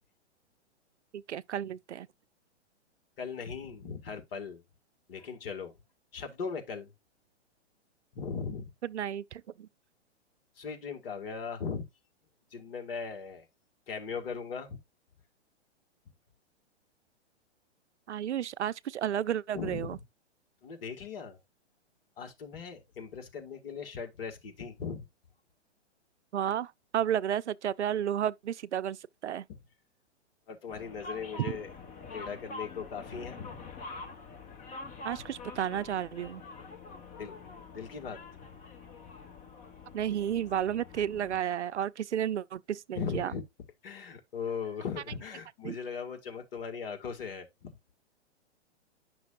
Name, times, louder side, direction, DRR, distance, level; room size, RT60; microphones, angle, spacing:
voice 1, 1.1-2.1 8.8-9.7 18.1-20.0 26.3-29.0 29.2-29.5 35.0-36.4 39.9-43.3 45.6-45.7, right 10 dB, 75° right, 0.5 m, -32 dB
voice 2, 3.2-4.6 5.1-5.7 6.1-6.9 8.1-8.7 10.6-11.8 12.5-13.5 13.9-14.8 19.5-19.9 20.6-21.4 22.2-25.0 29.5-29.6 30.5-31.7 32.1-33.6 37.2-37.4 37.7-38.2 42.9-43.4 43.8-47.8, left 6 dB, 55° left, 2.1 m, -38 dB
sound 1, 30.7-41.4, left 4 dB, 20° left, 1.5 m, -46 dB
10.0 x 6.0 x 2.5 m
figure-of-eight pair, 115°, 35 cm